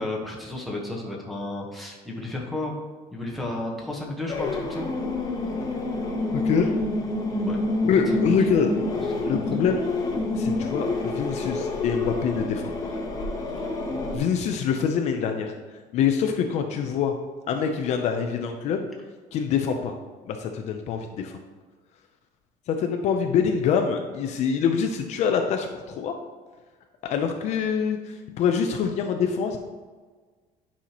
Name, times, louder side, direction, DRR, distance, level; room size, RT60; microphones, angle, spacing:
voice 1, 0.0-2.7 3.1-4.9 7.4-7.6 8.1-8.4 9.1-9.2 13.6-13.7, left 2 dB, ahead, -3 dB, 1.1 m, -33 dB
sound 1, 4.3-14.2, left 2 dB, 25° left, 1.0 m, -28 dB
voice 2, 6.3-6.8 7.8-8.7 9.2-9.8 10.3-13.0 14.1-15.5 15.9-17.1 17.5-18.9 19.3-19.9 20.3-21.4 22.7-26.2 27.0-29.6, left 7 dB, 50° left, 5 dB, 0.5 m, -25 dB
9.9 x 5.6 x 2.9 m, 1.4 s
cardioid pair, 175°, 15 cm